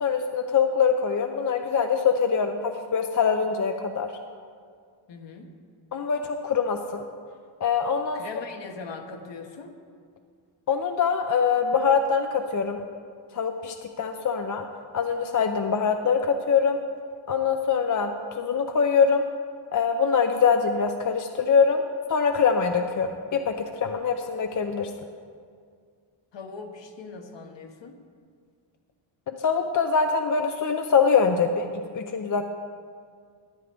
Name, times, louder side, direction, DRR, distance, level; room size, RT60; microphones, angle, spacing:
voice 1, 0.0-4.1 5.9-7.0 7.6-8.2 10.7-12.8 13.3-14.7 14.9-16.8 17.3-18.1 18.4-19.2 19.7-21.8 22.1-24.9 29.3-31.7 31.9-32.4, left 6 dB, 40° left, 5 dB, 0.5 m, -23 dB
voice 2, 5.1-5.5 8.1-9.7 26.3-28.0, left 4 dB, 60° left, 4 dB, 1.2 m, -40 dB
13.5 x 9.7 x 3.5 m, 2.1 s
wide cardioid pair, 115°, 49 cm